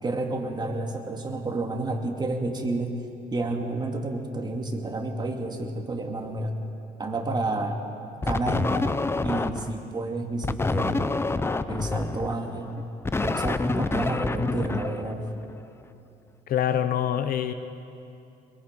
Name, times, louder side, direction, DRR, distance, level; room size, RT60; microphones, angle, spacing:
voice 1, 0.0-2.9 3.3-6.6 7.0-7.8 8.2-11.2 11.7-12.8 13.2-15.3, right 2 dB, 25° right, 2 dB, 2.4 m, -30 dB
sound 1, 8.2-9.8 10.4-15.6, left 3 dB, 15° left, 0.6 m, -27 dB
voice 2, 16.5-17.5, left 10 dB, 60° left, 10 dB, 1.0 m, -25 dB
22.5 x 22.5 x 5.4 m, 2.7 s
cardioid pair, 110°, 17 cm